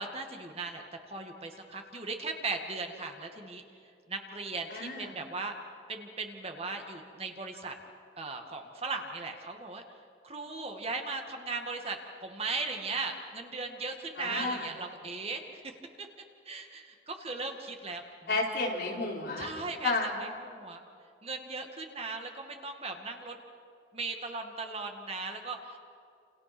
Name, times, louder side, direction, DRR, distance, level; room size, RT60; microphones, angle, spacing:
voice 1, 0.0-3.6 4.1-5.6 5.9-7.7 8.2-9.8 10.2-16.1 16.5-18.4 19.4-19.9 20.2-20.8 21.2-23.4 23.9-25.8, right 3 dB, 35° right, 4 dB, 2.1 m, -38 dB
voice 2, 4.7-5.2 14.2-14.7 18.3-19.5 19.8-20.1, left 3 dB, 60° left, -2 dB, 5.0 m, -32 dB
29.5 x 29.0 x 6.2 m, 2.4 s
head